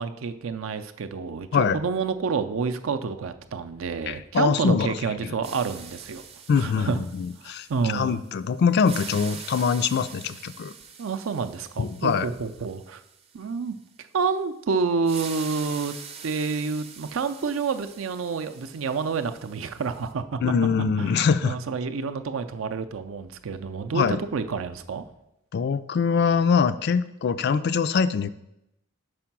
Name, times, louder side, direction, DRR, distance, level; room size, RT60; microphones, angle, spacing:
voice 1, 0.0-6.2 6.6-7.0 7.7-8.2 11.0-13.0 13.3-13.8 14.1-16.0 16.2-20.4 21.0-25.0, right 5 dB, 75° right, 10 dB, 0.5 m, -28 dB
voice 2, 4.1-5.0 5.2-5.3 6.5-10.7 11.8-12.3 20.4-21.6 23.9-24.2 25.5-28.3, left 6 dB, 55° left, 13 dB, 0.3 m, -23 dB
sound 1, 5.4-8.4 8.7-13.5 15.0-20.1, right 6 dB, 30° right, 0.5 m, -44 dB
5.3 x 5.0 x 5.8 m, 0.85 s
head